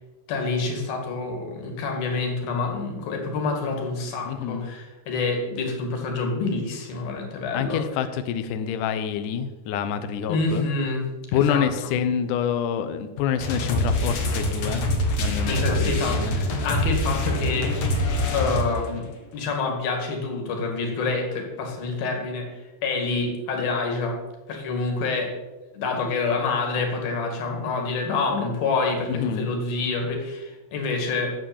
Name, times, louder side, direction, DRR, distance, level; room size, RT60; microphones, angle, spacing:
voice 1, 0.3-7.8 10.3-11.7 15.5-17.7 18.3-19.1 19.3-22.5 22.8-24.2 24.5-25.3 25.7-31.3, left 3 dB, 65° left, 3 dB, 3.9 m, -27 dB
voice 2, 4.3-4.7 7.5-10.6 11.3-14.9 15.2-16.4 29.1-29.5, left 8 dB, 80° left, 9 dB, 1.8 m, -27 dB
sound 1, 13.4-19.0, left 1 dB, 50° left, 2.3 m, -25 dB
12.0 x 8.8 x 7.2 m, 1.1 s
omnidirectional pair, 4.7 m